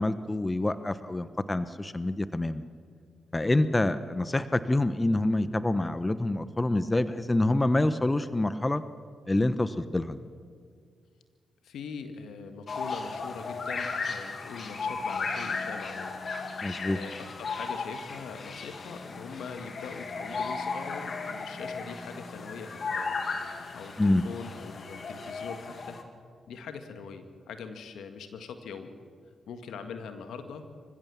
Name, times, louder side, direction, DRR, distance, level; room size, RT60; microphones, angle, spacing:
voice 1, 0.0-2.6 3.3-8.8 9.3-10.2 16.6-17.0 24.0-24.2, left 2 dB, 25° left, 13 dB, 1.0 m, -26 dB
voice 2, 11.6-16.1 16.8-23.1 23.7-26.0 26.5-29.0 29.5-30.6, left 5 dB, 75° left, 8 dB, 1.8 m, -42 dB
sound 1, 12.7-26.0, left 4 dB, 55° left, 2.3 m, -35 dB
26.0 x 15.5 x 7.2 m, 2.1 s
hypercardioid pair, 45°, 0 cm